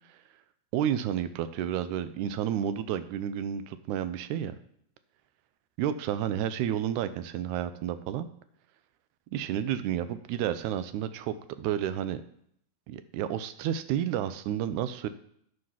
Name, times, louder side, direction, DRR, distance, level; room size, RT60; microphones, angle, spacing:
voice 1, 0.7-4.6 5.8-8.3 9.3-12.2 12.9-15.1, right 10 dB, 90° right, 12 dB, 2.1 m, -31 dB
9.7 x 5.4 x 5.7 m, 0.69 s
omnidirectional pair, 3.4 m